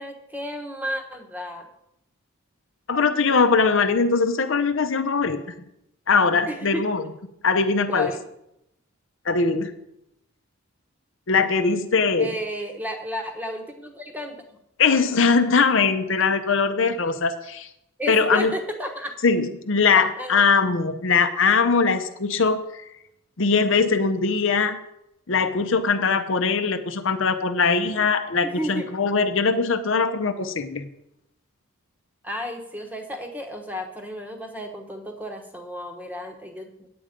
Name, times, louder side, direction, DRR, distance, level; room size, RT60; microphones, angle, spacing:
voice 1, 0.0-1.7 6.5-6.9 7.9-8.2 12.2-14.4 18.0-19.2 19.9-20.4 28.4-28.9 32.2-36.9, equal, 5° right, 4 dB, 1.0 m, -32 dB
voice 2, 2.9-5.5 6.1-7.0 7.4-8.1 9.2-9.7 11.3-12.3 14.8-17.7 18.1-18.5 19.2-22.8 23.4-24.8 25.3-30.9, left 4 dB, 60° left, 8 dB, 0.7 m, -21 dB
8.7 x 8.6 x 5.1 m, 0.82 s
head